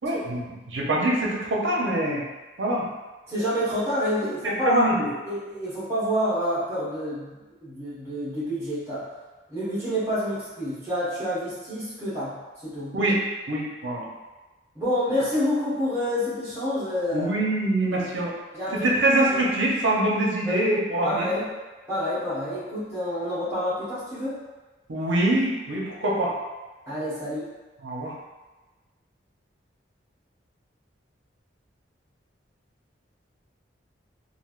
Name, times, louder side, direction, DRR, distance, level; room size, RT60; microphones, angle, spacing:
voice 1, 0.0-2.2 2.6-2.8 4.4-5.1 12.9-13.2 13.5-14.0 17.1-18.3 18.8-21.3 24.9-26.3 27.8-28.1, right 1 dB, 75° right, -3 dB, 0.6 m, -24 dB
voice 2, 3.3-4.9 5.2-9.0 9.5-12.4 12.6-13.0 14.7-17.3 17.9-18.1 18.5-18.9 20.4-20.6 21.0-21.5 21.9-24.4 26.9-27.5, equal, 15° right, -11 dB, 1.1 m, -28 dB
3.2 x 2.5 x 2.4 m, 1.2 s
head